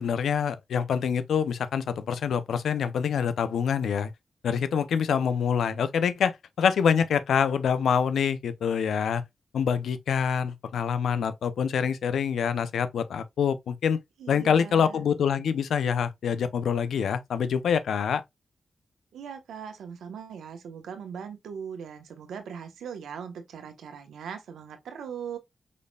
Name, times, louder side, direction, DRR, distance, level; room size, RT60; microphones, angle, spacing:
voice 1, 0.0-4.1 4.4-9.2 9.5-14.0 14.3-18.2, left 7 dB, 85° left, 0.5 m, -26 dB
voice 2, 14.2-15.1 19.1-25.4, right 7 dB, 90° right, 1.0 m, -40 dB
5.2 x 4.2 x 2.3 m
supercardioid pair, 45°, 0 cm